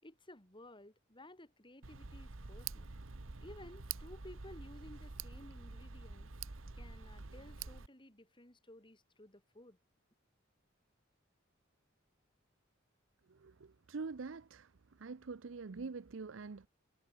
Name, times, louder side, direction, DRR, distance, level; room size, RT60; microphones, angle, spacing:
voice 1, 0.0-2.9 3.4-6.3 6.7-9.8, left 1 dB, 25° left, 6.2 m, -56 dB
Tick, 1.8-7.9, right 5 dB, 85° right, 1.3 m, -47 dB
voice 2, 13.3-14.7 15.0-16.7, right 4 dB, 70° right, 0.6 m, -45 dB
head